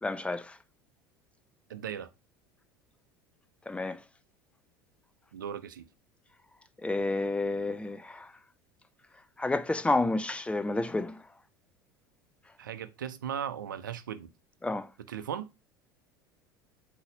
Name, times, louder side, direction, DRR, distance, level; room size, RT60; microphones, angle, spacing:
voice 1, 0.0-0.6 3.7-4.0 6.8-8.3 9.4-11.2 14.6-14.9, left 2 dB, 10° left, 0.7 m, -30 dB
voice 2, 1.7-2.1 5.3-5.9 12.6-14.3 15.1-15.5, right 9 dB, 80° right, 0.6 m, -37 dB
8.0 x 2.9 x 5.2 m
hypercardioid pair, 75°, 10 cm